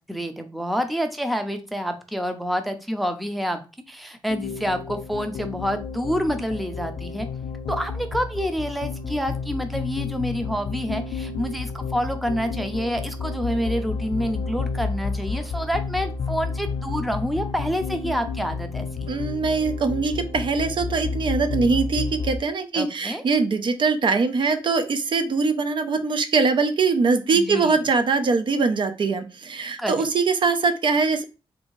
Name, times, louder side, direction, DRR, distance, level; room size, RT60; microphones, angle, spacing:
voice 1, 0.1-3.6 3.9-7.3 7.7-19.1 22.7-23.2 27.3-27.7 29.8-30.0, equal, ahead, 7 dB, 0.5 m, -28 dB
sound 1, 4.3-22.4, left 4 dB, 80° left, 0.4 m, -31 dB
voice 2, 19.1-31.2, right 4 dB, 60° right, 8 dB, 0.5 m, -22 dB
3.2 x 2.7 x 3.0 m, 0.31 s
wide cardioid pair, 100°, 9 cm